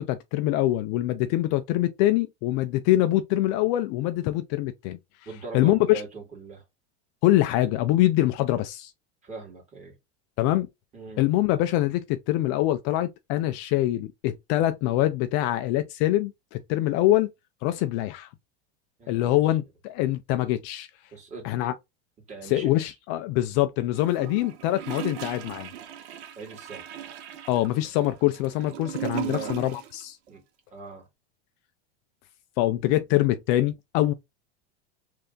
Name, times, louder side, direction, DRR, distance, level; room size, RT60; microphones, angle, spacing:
voice 1, 0.0-5.0 5.5-6.0 7.2-8.9 10.4-10.7 11.2-17.3 17.6-18.3 19.1-20.9 21.4-21.7 22.4-25.7 27.5-30.2 32.6-34.1, left 15 dB, 50° left, 0.4 m, -24 dB
voice 2, 5.3-6.6 9.2-10.0 10.9-11.2 19.0-19.4 21.1-21.4 22.3-22.7 26.4-26.8 29.2-29.6 30.3-30.4 30.7-31.1, right 4 dB, 20° right, 1.9 m, -40 dB
Gurgling / Toilet flush, 23.9-30.0 30.3-30.4, right 11 dB, 85° right, 0.9 m, -37 dB
3.3 x 2.7 x 3.7 m
supercardioid pair, 145°, 33 cm